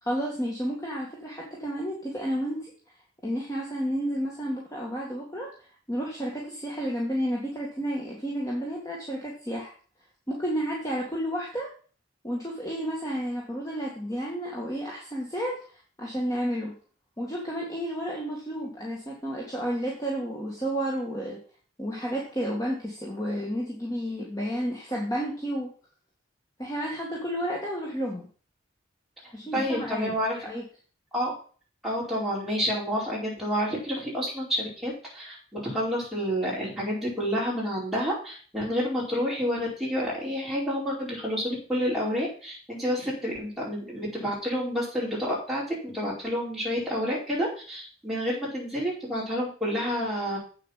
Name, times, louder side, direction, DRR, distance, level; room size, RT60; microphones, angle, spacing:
voice 1, 0.0-2.7 3.2-5.5 5.9-9.7 10.3-11.7 12.2-16.7 17.2-21.4 21.8-25.7 26.6-28.3 29.3-30.6, equal, 20° left, -3 dB, 1.9 m, -31 dB
voice 2, 29.5-30.4 31.1-31.3 31.8-50.4, equal, ahead, -6 dB, 4.6 m, -29 dB
8.3 x 7.2 x 5.8 m, 0.41 s
head